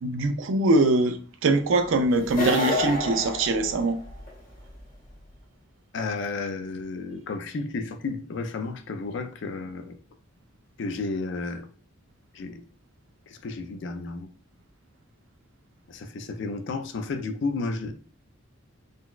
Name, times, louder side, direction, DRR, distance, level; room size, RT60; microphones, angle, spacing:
voice 1, 0.0-4.0, right 2 dB, 70° right, 0.4 m, -23 dB
sound 1, 2.2-4.3, left 1 dB, 45° left, 0.8 m, -28 dB
voice 2, 5.9-10.0 10.8-11.7 12.3-12.6 13.3-14.3 15.9-17.9, left 3 dB, 60° left, 0.4 m, -32 dB
3.8 x 2.2 x 2.3 m
head